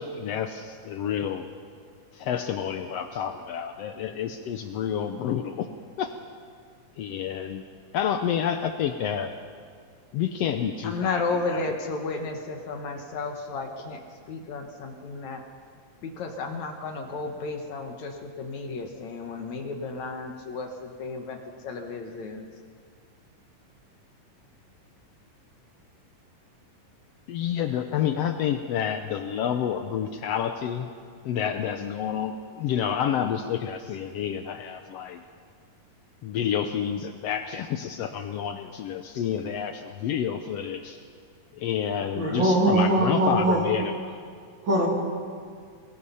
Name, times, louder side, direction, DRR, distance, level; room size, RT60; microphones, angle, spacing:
voice 1, 0.0-1.5 2.1-5.7 6.0-6.1 7.0-7.6 7.9-9.3 10.1-11.2 11.5-11.6 27.3-30.9 31.2-35.2 36.2-41.0 41.5-43.9, left 8 dB, 90° left, 7 dB, 1.4 m, -29 dB
voice 2, 10.8-15.4 16.0-22.5, left 3 dB, 65° left, 4 dB, 2.4 m, -33 dB
voice 3, 42.1-43.7 44.6-44.9, right 1 dB, 35° right, -2 dB, 3.7 m, -22 dB
23.5 x 20.0 x 5.7 m, 2.1 s
omnidirectional pair, 3.9 m